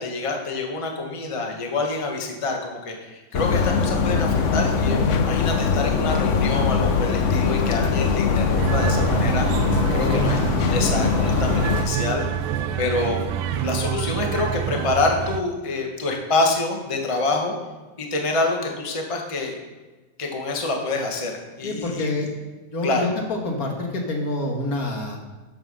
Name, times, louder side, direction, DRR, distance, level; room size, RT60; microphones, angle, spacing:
voice 1, 0.0-9.5 9.9-10.4 10.7-12.2 12.8-17.5 18.0-19.6 20.2-22.1 22.8-23.1, left 3 dB, 20° left, 2 dB, 1.2 m, -26 dB
sound 1, 3.3-11.9, left 5 dB, 80° left, 0.6 m, -21 dB
sound 2, 8.6-15.4, right 9 dB, 85° right, 1.5 m, -27 dB
voice 2, 9.9-10.4 21.6-22.3 22.7-25.2, left 2 dB, 45° left, 1 dB, 2.3 m, -27 dB
13.5 x 7.0 x 5.5 m, 1.2 s
omnidirectional pair, 2.4 m